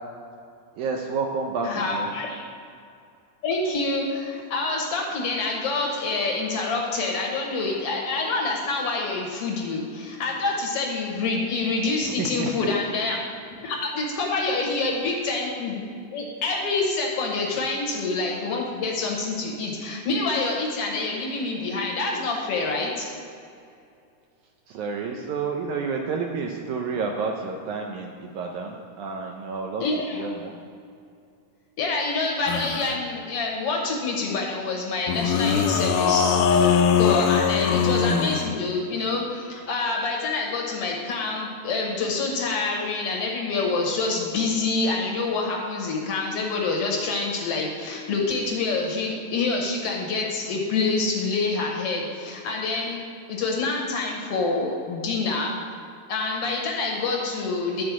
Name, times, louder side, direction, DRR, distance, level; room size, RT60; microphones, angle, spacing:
voice 1, 0.8-2.1 12.0-12.5 24.7-29.8 30.1-30.5, right 4 dB, 75° right, 2 dB, 1.9 m, -30 dB
voice 2, 1.6-2.5 3.4-13.2 13.6-15.8 16.1-23.1 29.8-30.3 31.8-53.0 53.3-55.5 56.1-57.8, left 3 dB, 65° left, -1 dB, 1.6 m, -27 dB
sound 1, 32.5-33.0 35.1-38.5, left 7 dB, 80° left, 2.0 m, -21 dB
11.0 x 4.3 x 5.9 m, 2.5 s
omnidirectional pair, 3.8 m